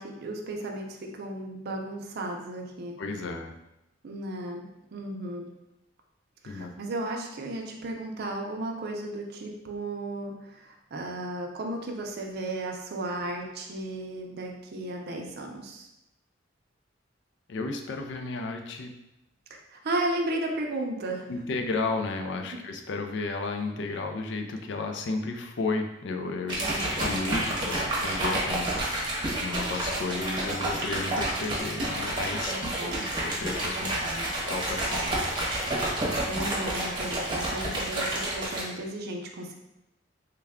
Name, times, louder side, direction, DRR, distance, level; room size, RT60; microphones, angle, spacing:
voice 1, 0.0-3.0 4.0-5.5 6.4-15.9 19.5-21.3 26.6-26.9 32.5-33.1 33.8-34.3 36.0-39.6, right 1 dB, 55° right, 1 dB, 0.5 m, -35 dB
voice 2, 3.0-3.5 6.4-6.7 17.5-18.9 21.3-26.6 27.0-29.1 29.4-32.7 33.2-33.9 34.5-35.2, left 3 dB, 65° left, 5 dB, 0.4 m, -33 dB
sound 1, 26.5-38.6, right 1 dB, 25° right, 0.8 m, -29 dB
3.3 x 2.2 x 3.5 m, 0.89 s
head